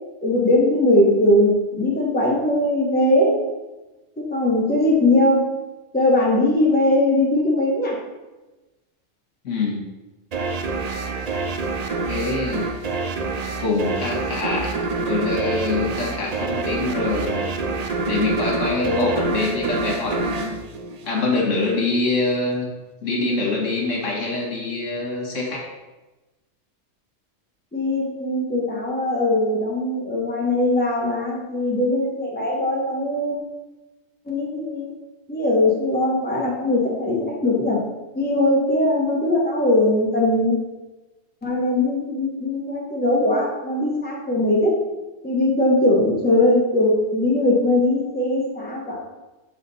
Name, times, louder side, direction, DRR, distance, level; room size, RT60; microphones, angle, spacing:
voice 1, 0.2-3.4 4.3-5.5 5.9-8.0 18.8-19.1 27.7-33.4 34.3-34.9 35.3-37.8 38.1-40.6 41.4-44.8 45.2-49.0, left 1 dB, 10° left, -3 dB, 1.0 m, -20 dB
voice 2, 9.4-9.8 12.0-12.8 13.6-14.7 15.0-17.5 18.1-20.6 21.0-22.7 23.0-25.7, left 3 dB, 70° left, -2 dB, 1.7 m, -24 dB
sound 1, 10.3-21.6, right 3 dB, 70° right, 0.3 m, -26 dB
7.1 x 4.1 x 4.1 m, 1.1 s
omnidirectional pair, 1.4 m